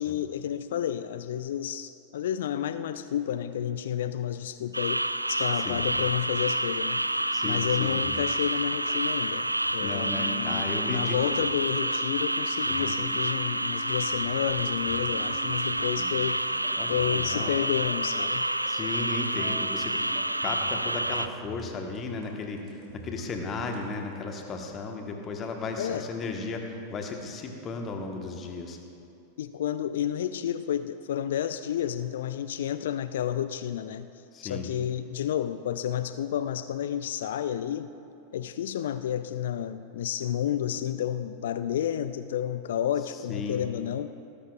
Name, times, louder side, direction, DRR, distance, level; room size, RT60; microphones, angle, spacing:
voice 1, 0.0-7.0 7.4-16.4 16.9-18.5 25.8-26.1 29.4-34.1 34.4-37.9 38.3-44.2, left 10 dB, 60° left, 12 dB, 0.3 m, -31 dB
sound 1, 4.7-21.3, right 1 dB, 85° right, 0.3 m, -29 dB
sound 2, 5.3-10.2 11.2-24.1, right 2 dB, 40° right, 2.6 m, -46 dB
voice 2, 7.3-7.9 9.8-11.4 12.7-12.9 16.8-17.5 18.7-20.0 20.4-28.8 34.3-34.7 43.1-43.6, left 3 dB, 25° left, 3 dB, 1.3 m, -35 dB
19.0 x 13.5 x 2.4 m, 2.6 s
figure-of-eight pair, 90°, 0 cm